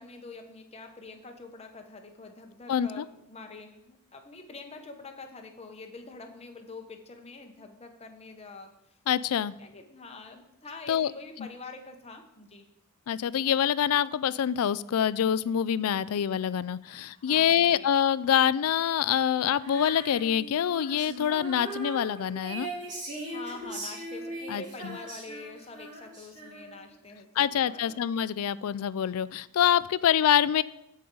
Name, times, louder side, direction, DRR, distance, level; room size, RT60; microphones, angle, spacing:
voice 1, 0.0-8.7 9.6-12.7 16.9-17.9 23.3-28.0, left 3 dB, 30° left, 4 dB, 1.0 m, -45 dB
voice 2, 2.7-3.0 9.1-9.5 10.9-11.1 13.1-22.7 24.5-25.0 27.4-30.6, left 9 dB, 75° left, 18 dB, 0.4 m, -26 dB
Female singing, 19.6-26.9, right 2 dB, 35° right, 2.9 m, -40 dB
15.5 x 5.5 x 3.8 m, 0.83 s
head